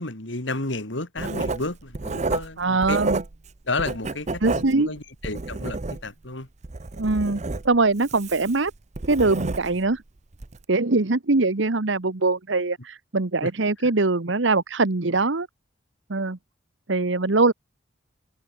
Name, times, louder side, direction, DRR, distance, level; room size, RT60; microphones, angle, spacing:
voice 1, 0.0-3.0 3.6-6.5 13.4-13.5 13.8-13.9, left 2 dB, 65° left, 3.1 m, -32 dB
Writing, 1.2-3.5 3.8-6.3 6.6-9.9 10.3-10.6, right 3 dB, 35° right, 0.7 m, -30 dB
voice 2, 2.6-3.2 4.4-4.9 7.0-8.7 9.1-10.0 10.7-15.5 16.1-16.4 16.9-17.5, right 3 dB, 65° right, 1.1 m, -22 dB
head